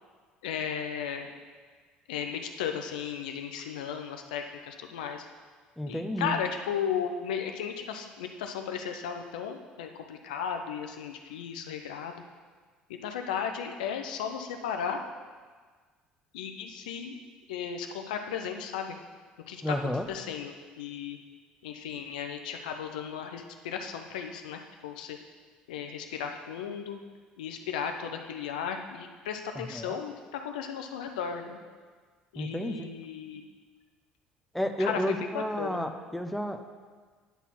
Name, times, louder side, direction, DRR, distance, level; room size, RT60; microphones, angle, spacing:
voice 1, 0.4-1.3 2.1-5.3 5.9-12.2 12.9-15.0 16.3-17.2 17.5-19.0 19.5-19.8 20.1-21.2 21.6-25.2 25.7-27.0 27.4-31.6 32.3-33.5 34.8-35.9, left 7 dB, 75° left, 5 dB, 0.6 m, -35 dB
voice 2, 5.8-6.3 19.6-20.1 29.5-30.0 32.4-32.9 34.5-36.6, left 1 dB, 5° left, 6 dB, 0.7 m, -31 dB
9.4 x 4.1 x 5.8 m, 1.5 s
figure-of-eight pair, 55°, 4 cm